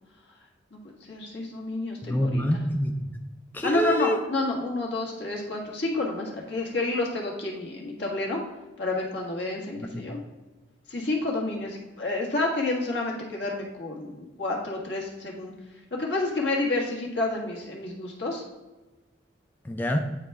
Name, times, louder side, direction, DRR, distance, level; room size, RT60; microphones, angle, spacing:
voice 1, 0.7-2.4 3.6-8.4 8.8-10.2 10.9-15.5 15.9-18.4, left 2 dB, 70° left, -2 dB, 1.8 m, -29 dB
voice 2, 2.0-3.1 3.5-4.2 9.8-10.0 19.6-20.0, equal, 10° left, 3 dB, 0.4 m, -26 dB
9.1 x 4.2 x 3.4 m, 1.2 s
head